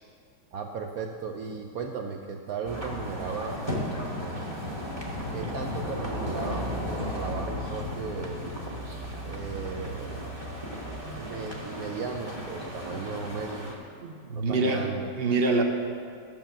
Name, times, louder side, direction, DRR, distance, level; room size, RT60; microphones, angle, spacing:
voice 1, 0.5-3.7 4.1-4.7 5.3-8.6 9.2-10.3 11.1-13.7 14.3-15.1, right 5 dB, 75° right, 3 dB, 0.8 m, -36 dB
sound 1, 2.6-13.7, equal, 15° right, 1.4 m, -35 dB
voice 2, 14.0-15.6, right 3 dB, 40° right, 3 dB, 0.9 m, -26 dB
13.0 x 6.9 x 6.9 m, 2.4 s
omnidirectional pair, 2.3 m